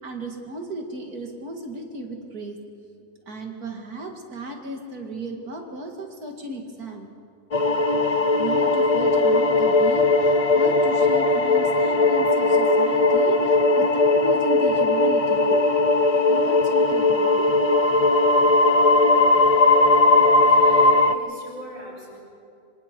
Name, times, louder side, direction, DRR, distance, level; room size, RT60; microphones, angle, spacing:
voice 1, 0.0-2.6 3.3-7.1 7.9-15.6 16.3-17.5, right 1 dB, 80° right, 2 dB, 2.8 m, -35 dB
sound 1, 7.5-21.1, left 2 dB, 40° left, 0.5 m, -18 dB
voice 2, 20.5-22.2, equal, 60° left, -4 dB, 7.5 m, -42 dB
26.0 x 25.5 x 4.6 m, 2.5 s
omnidirectional pair, 1.6 m